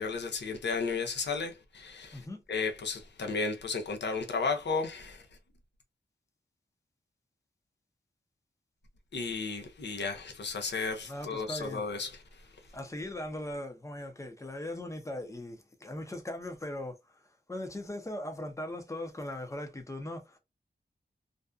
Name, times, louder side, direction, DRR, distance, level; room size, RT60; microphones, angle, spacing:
voice 1, 0.0-2.2 2.5-5.2 9.1-12.1, left 4 dB, 75° left, 0.6 m, -33 dB
voice 2, 11.0-11.8 12.7-17.2 17.5-20.4, left 1 dB, 15° left, 0.5 m, -39 dB
2.5 x 2.2 x 2.3 m
wide cardioid pair, 105°, 18 cm